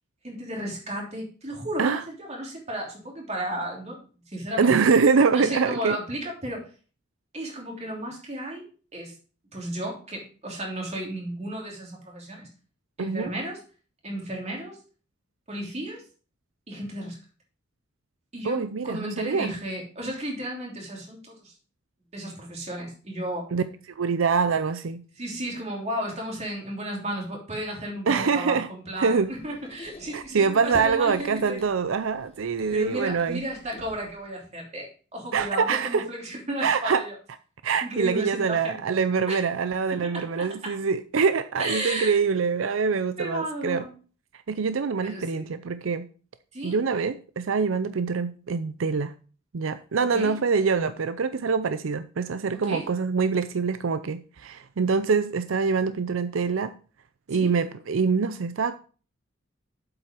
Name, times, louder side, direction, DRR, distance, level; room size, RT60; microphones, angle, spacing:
voice 1, 0.2-4.0 4.3-4.7 5.3-6.7 7.3-8.6 8.9-9.1 9.5-12.5 13.0-13.6 14.0-14.8 15.5-16.0 16.7-17.2 18.3-21.5 22.1-23.5 25.2-31.6 32.7-37.1 37.8-39.0 39.3-39.4 39.9-40.8 41.6-42.2 43.2-43.9 45.0-45.5 46.5-46.8 50.0-50.4 52.5-52.9 57.3-57.5, right 1 dB, 35° right, 3.2 m, -34 dB
voice 2, 4.6-6.0 13.0-13.3 18.4-19.5 23.5-23.6 24.0-25.0 28.1-28.7 29.0-29.3 30.1-33.4 35.3-36.1 36.6-37.0 37.6-43.8 44.5-46.1 46.6-49.1 49.5-56.7 57.3-58.8, right 5 dB, 85° right, 0.5 m, -24 dB
Squeak, 29.1-34.3, left 1 dB, 30° left, 1.3 m, -47 dB
7.9 x 7.8 x 4.6 m
head